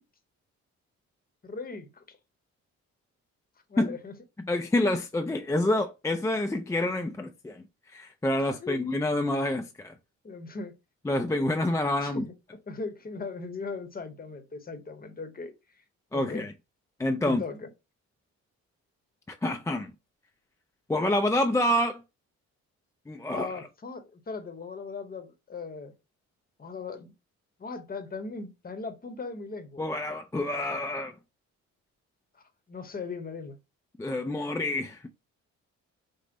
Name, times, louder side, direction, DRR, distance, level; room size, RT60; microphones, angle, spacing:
voice 1, 1.4-2.2 3.7-4.1 8.6-8.8 10.2-10.8 12.0-12.3 12.7-15.5 16.1-16.5 17.2-17.7 23.3-25.9 26.6-27.1 27.6-29.9 32.7-33.6, left 4 dB, 30° left, 0.9 m, -38 dB
voice 2, 4.4-7.6 7.9-9.9 11.0-12.2 16.1-16.5 17.0-17.4 19.4-19.9 20.9-22.0 23.1-23.5 29.8-31.1 34.0-35.1, left 1 dB, 10° left, 0.4 m, -27 dB
5.1 x 2.1 x 3.9 m
cardioid pair, 90°, 30 cm